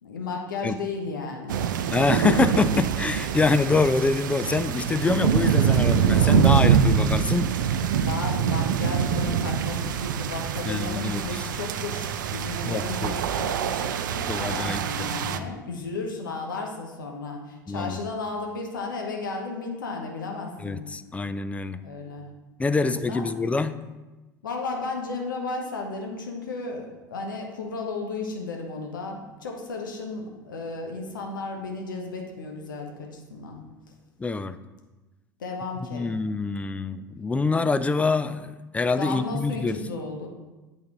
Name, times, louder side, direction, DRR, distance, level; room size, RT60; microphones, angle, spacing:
voice 1, 0.0-1.7 7.9-20.8 21.8-22.3 22.7-23.3 24.4-33.6 35.4-36.1 38.9-40.3, left 3 dB, 75° left, 1 dB, 1.0 m, -34 dB
sound 1, 1.5-15.4, right 8 dB, 70° right, 0.4 m, -24 dB
voice 2, 1.9-7.8 10.7-11.4 12.7-13.1 14.3-15.5 17.7-18.0 20.6-21.8 22.6-23.8 34.2-34.6 35.9-39.8, left 3 dB, 10° left, 12 dB, 0.3 m, -25 dB
8.4 x 4.1 x 3.8 m, 1.1 s
figure-of-eight pair, 75°, 11 cm